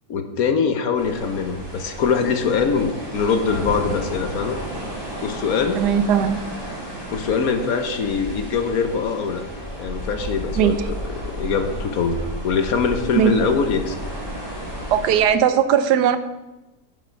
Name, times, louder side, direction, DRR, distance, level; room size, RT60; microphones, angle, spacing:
voice 1, 0.1-4.6 5.2-5.8 7.1-9.4 9.7-14.0, left 5 dB, 65° left, 7 dB, 1.2 m, -23 dB
sound 1, 0.9-15.3, equal, 15° right, 2.4 m, -33 dB
sound 2, 3.5-5.4, left 1 dB, 35° left, 2.2 m, -34 dB
voice 2, 5.8-6.4 10.6-10.7 13.1-13.3 14.9-16.2, right 9 dB, 80° right, 11 dB, 1.3 m, -18 dB
8.4 x 8.3 x 4.6 m, 1.0 s
omnidirectional pair, 1.8 m